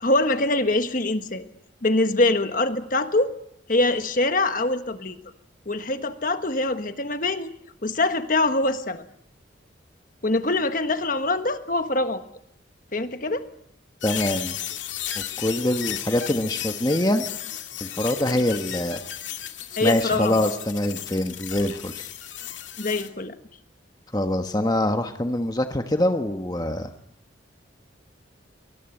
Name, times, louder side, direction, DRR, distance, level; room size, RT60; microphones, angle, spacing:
voice 1, 0.0-1.4 1.8-3.3 3.7-5.2 5.7-7.5 7.8-9.0 10.2-12.3 12.9-13.5 19.8-20.4 22.8-23.4, left 2 dB, 45° left, 9 dB, 1.4 m, -24 dB
sound 1, 14.0-23.1, left 11 dB, 75° left, 2.2 m, -34 dB
voice 2, 14.0-14.6 15.1-17.2 17.8-19.0 19.8-22.1 24.1-26.9, left 1 dB, 20° left, 6 dB, 1.2 m, -24 dB
24.0 x 20.5 x 7.9 m, 0.73 s
head